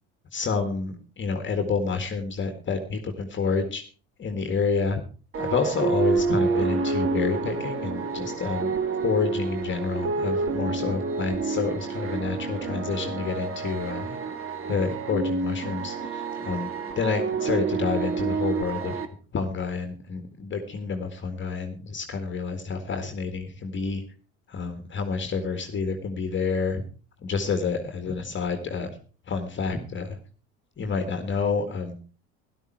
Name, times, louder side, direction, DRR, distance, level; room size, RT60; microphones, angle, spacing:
voice 1, 0.3-3.8 4.2-5.0 5.4-8.7 9.0-14.2 14.7-16.7 17.0-19.0 19.3-24.0 24.5-26.8 27.2-28.9 29.3-30.2 30.8-32.0, left 5 dB, 35° left, 6 dB, 1.9 m, -29 dB
sound 1, 5.3-19.1, right 4 dB, 40° right, 1.8 m, -28 dB
12.5 x 12.0 x 4.6 m, 0.38 s
hypercardioid pair, 85°, 34 cm